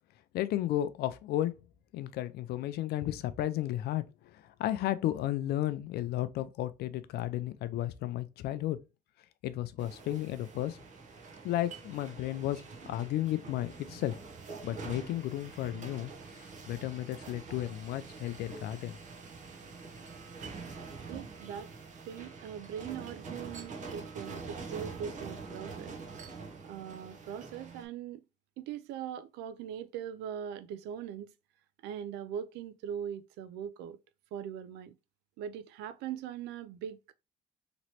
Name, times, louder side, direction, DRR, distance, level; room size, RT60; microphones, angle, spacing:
voice 1, 0.3-1.5 1.9-4.0 4.3-8.8 9.4-10.8 11.4-14.2 14.6-16.1 16.4-19.0, left 13 dB, 70° left, 0.4 m, -33 dB
sound 1, 9.8-27.9, right 4 dB, 45° right, 0.8 m, -45 dB
voice 2, 21.1-21.7 22.1-25.9 26.6-28.2 28.6-31.3 31.8-34.0 34.3-34.9 35.4-37.1, right 9 dB, 85° right, 0.4 m, -41 dB
3.0 x 3.0 x 2.8 m
cardioid pair, 110°, 17 cm